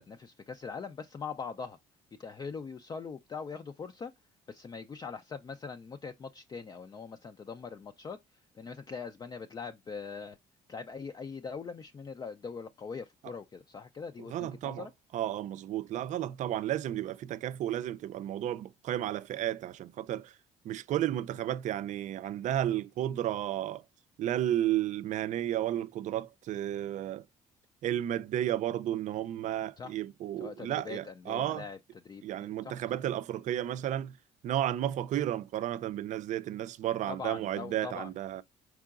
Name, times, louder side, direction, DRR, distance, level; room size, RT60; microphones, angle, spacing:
voice 1, 0.0-1.8 2.2-4.1 4.5-10.4 10.7-14.9 29.8-29.9 30.4-32.8 37.1-38.1, left 5 dB, 30° left, 0.4 m, -42 dB
voice 2, 14.3-14.9 15.1-20.3 20.6-23.8 24.2-27.2 27.8-31.6 32.2-34.2 34.4-38.4, right 12 dB, 60° right, 0.5 m, -32 dB
4.7 x 3.7 x 2.4 m
cardioid pair, 85°, 14 cm